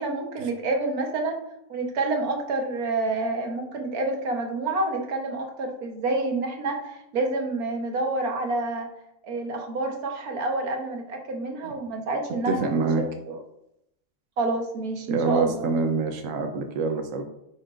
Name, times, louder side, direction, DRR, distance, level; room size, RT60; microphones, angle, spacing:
voice 1, 0.0-1.4 1.7-8.9 9.2-12.8 13.3-13.4 14.4-15.7, right 2 dB, 85° right, 3 dB, 1.7 m, -28 dB
voice 2, 12.4-13.0 15.1-17.2, right 4 dB, 65° right, 4 dB, 1.2 m, -25 dB
9.6 x 6.1 x 2.5 m, 0.80 s
omnidirectional pair, 1.5 m